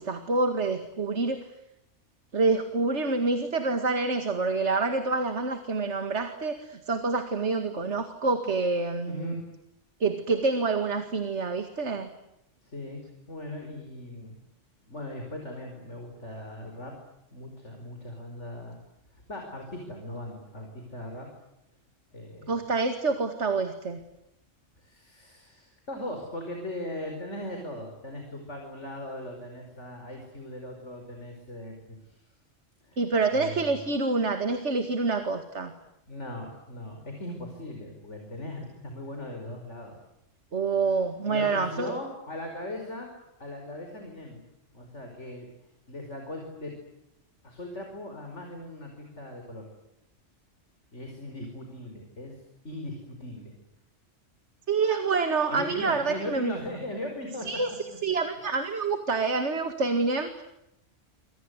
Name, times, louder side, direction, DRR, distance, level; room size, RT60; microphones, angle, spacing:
voice 1, 0.0-1.4 2.3-9.4 10.0-12.1 22.5-24.0 33.0-35.7 40.5-41.9 54.7-56.5 57.5-60.4, right 3 dB, 65° right, 8 dB, 2.4 m, -27 dB
voice 2, 9.0-9.4 12.6-13.0 13.3-14.4 14.8-16.9 17.3-18.8 19.1-21.3 22.1-22.5 24.8-32.2 32.8-33.0 33.3-33.8 36.1-40.0 41.2-43.1 43.4-44.4 44.7-45.5 45.9-46.7 47.4-49.7 50.9-52.4 52.6-53.5 55.5-57.5 57.9-58.0, left 1 dB, 70° left, 3 dB, 5.5 m, -39 dB
28.0 x 25.0 x 8.2 m, 0.85 s
omnidirectional pair, 1.3 m